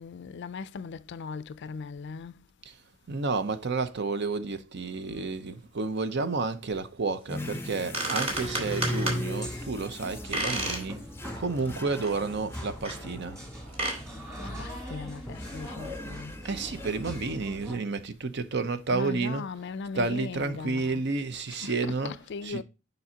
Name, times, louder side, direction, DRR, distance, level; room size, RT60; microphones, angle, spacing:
voice 1, 0.0-2.3 14.4-16.3 18.9-21.0 21.5-22.6, left 5 dB, 60° left, 0.4 m, -39 dB
voice 2, 3.1-11.0 11.3-13.4 16.4-19.4 20.0-22.6, right 4 dB, 60° right, 0.7 m, -31 dB
sound 1, 7.3-13.7 14.2-14.8 15.3-17.3, left 1 dB, 10° left, 0.5 m, -38 dB
sound 2, 7.6-7.7 7.9-9.2 10.3-10.9 11.3-11.4 12.0-12.1 12.8-13.0 13.7-14.0, right 2 dB, 30° right, 2.1 m, -31 dB
sound 3, 8.3-17.8, equal, 15° right, 2.1 m, -42 dB
6.9 x 5.3 x 2.8 m
head